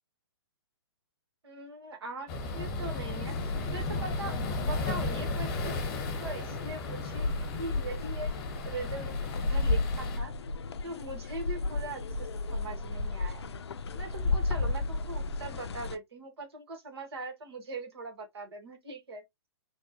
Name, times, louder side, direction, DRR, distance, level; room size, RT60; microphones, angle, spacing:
voice 1, 1.4-5.8 6.2-8.3 8.7-10.3 10.8-13.6 13.9-19.2, right 2 dB, 75° right, 1.4 m, -41 dB
sound 1, 2.3-10.2, left 3 dB, 40° left, 1.1 m, -35 dB
sound 2, 3.3-16.0, left 3 dB, 80° left, 0.4 m, -34 dB
3.2 x 2.1 x 2.8 m
hypercardioid pair, 135°, 14 cm